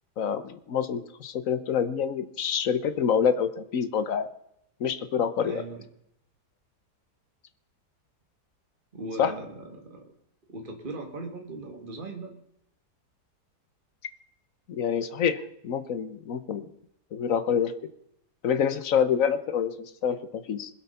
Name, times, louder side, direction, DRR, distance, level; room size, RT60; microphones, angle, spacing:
voice 1, 0.2-4.3 4.8-5.6 9.2-9.3 14.7-16.6 17.1-17.7 18.4-20.7, left 7 dB, 55° left, 12 dB, 1.2 m, -27 dB
voice 2, 5.4-5.8 8.9-10.1 10.5-12.3, right 2 dB, 30° right, 3 dB, 2.0 m, -38 dB
21.0 x 8.3 x 5.6 m, 0.78 s
omnidirectional pair, 1.8 m